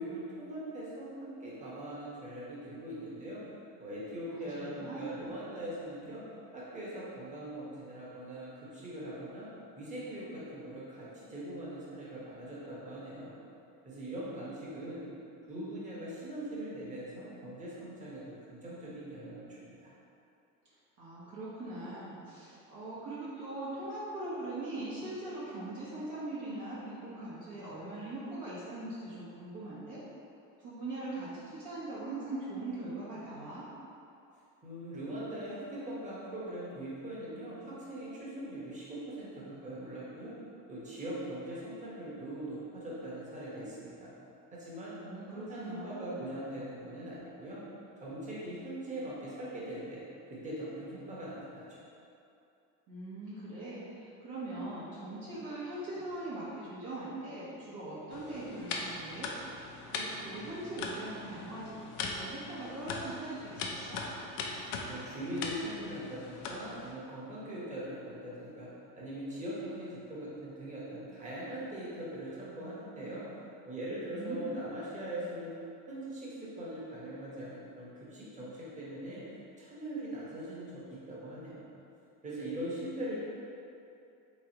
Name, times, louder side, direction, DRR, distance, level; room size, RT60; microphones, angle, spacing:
voice 1, 0.0-3.4 3.8-6.2 6.5-9.5 9.7-13.3 13.8-15.1 15.5-19.8 34.6-40.3 40.7-44.1 44.5-44.9 45.3-47.6 48.0-50.0 50.3-51.8 64.6-68.7 69.0-73.3 73.6-75.5 75.9-79.2 79.6-81.7 82.2-83.2, right 1 dB, 15° right, -8 dB, 1.1 m, -41 dB
voice 2, 4.3-5.3 21.0-30.0 30.6-33.6 45.0-46.3 52.9-59.3 59.9-64.0 74.1-74.4, right 2 dB, 50° right, -9 dB, 1.0 m, -41 dB
sound 1, 58.1-66.9, left 3 dB, 70° left, 0.6 m, -40 dB
3.5 x 3.1 x 2.9 m, 2.6 s
supercardioid pair, 110°, 41 cm